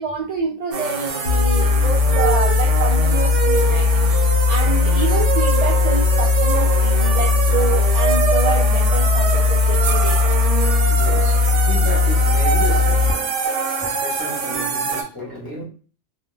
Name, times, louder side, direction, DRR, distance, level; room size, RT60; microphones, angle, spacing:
voice 1, 0.0-10.2, right 4 dB, 65° right, 0.4 m, -27 dB
sound 1, 0.7-15.0, right 6 dB, 80° right, 0.9 m, -24 dB
sound 2, 1.3-13.1, left 4 dB, 90° left, 0.9 m, -18 dB
voice 2, 10.8-15.6, equal, 20° left, 0.9 m, -33 dB
2.2 x 2.2 x 3.1 m
omnidirectional pair, 1.2 m